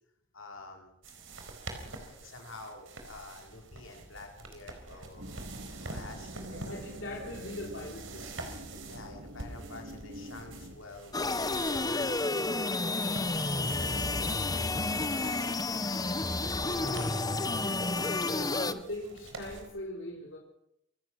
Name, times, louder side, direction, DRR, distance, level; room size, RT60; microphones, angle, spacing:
voice 1, 0.3-1.0 2.0-5.3 5.8-6.8 8.9-12.1 13.5-14.0 14.6-16.1 18.0-18.7, left 3 dB, 85° left, 3 dB, 4.5 m, -48 dB
sound 1, 1.0-19.7, right 3 dB, 85° right, 4.2 m, -47 dB
sound 2, 5.2-10.8, equal, 65° right, 1.9 m, -45 dB
voice 2, 6.6-8.5 13.7-14.3 16.7-20.4, left 1 dB, 70° left, 0 dB, 3.4 m, -42 dB
sound 3, 11.1-18.7, left 2 dB, 20° left, 0.9 m, -30 dB
27.0 x 15.5 x 6.3 m, 0.79 s
head